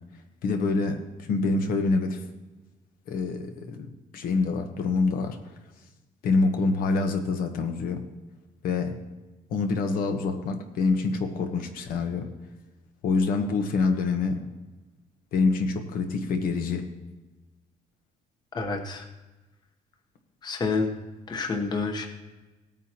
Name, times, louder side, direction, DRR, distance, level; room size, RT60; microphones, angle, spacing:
voice 1, 0.4-2.2 3.1-5.4 6.2-8.0 8.6-9.0 9.5-12.3 13.0-14.4 15.3-16.9, left 4 dB, 75° left, 5 dB, 1.2 m, -26 dB
voice 2, 18.5-19.0 20.4-20.9 21.3-22.1, left 4 dB, 30° left, 4 dB, 1.0 m, -28 dB
18.0 x 9.1 x 3.0 m, 1.2 s
cardioid pair, 160°, 15 cm